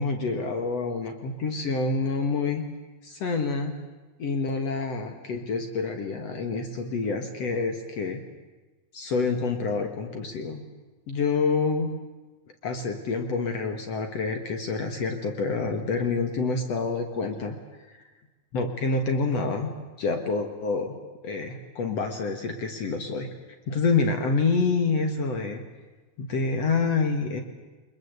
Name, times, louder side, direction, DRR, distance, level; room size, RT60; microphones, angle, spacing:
voice 1, 0.0-2.6 3.0-3.7 4.2-8.2 8.9-10.6 11.1-11.9 12.6-17.6 18.5-19.7 20.0-21.0 21.2-23.3 23.7-25.6 26.2-27.4, left 4 dB, 60° left, 6 dB, 2.7 m, -27 dB
25.0 x 21.5 x 8.1 m, 1.2 s
omnidirectional pair, 3.5 m